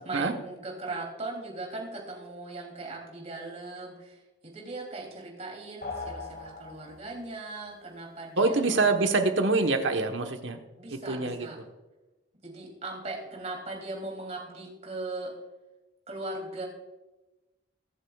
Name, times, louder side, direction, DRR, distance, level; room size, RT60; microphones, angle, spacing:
voice 1, 0.0-8.9 10.8-11.5 12.4-15.3 16.1-16.7, right 2 dB, 35° right, -1 dB, 3.0 m, -39 dB
sound 1, 5.8-7.3, left 3 dB, 50° left, 1.5 m, -39 dB
voice 2, 8.4-10.6 10.9-11.5, right 3 dB, 85° right, 5 dB, 1.2 m, -25 dB
23.0 x 8.0 x 2.4 m, 1.1 s
head